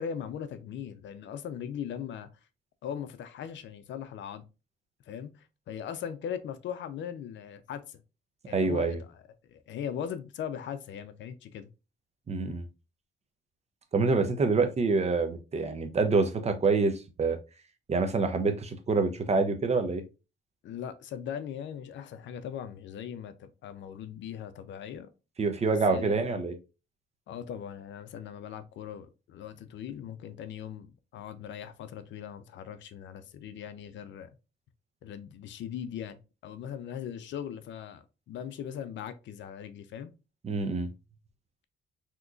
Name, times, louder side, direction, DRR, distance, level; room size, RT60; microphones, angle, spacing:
voice 1, 0.0-2.3 2.8-4.4 5.1-8.0 8.5-9.2 9.5-11.7 20.6-25.1 25.6-26.4 27.3-34.3 35.0-40.1, left 8 dB, 70° left, 0.5 m, -39 dB
voice 2, 8.5-9.0 12.3-12.7 13.9-17.4 17.9-20.0 25.4-26.5 40.4-40.9, right 4 dB, 35° right, 0.6 m, -26 dB
3.6 x 2.9 x 2.4 m
cardioid pair, 90°, 20 cm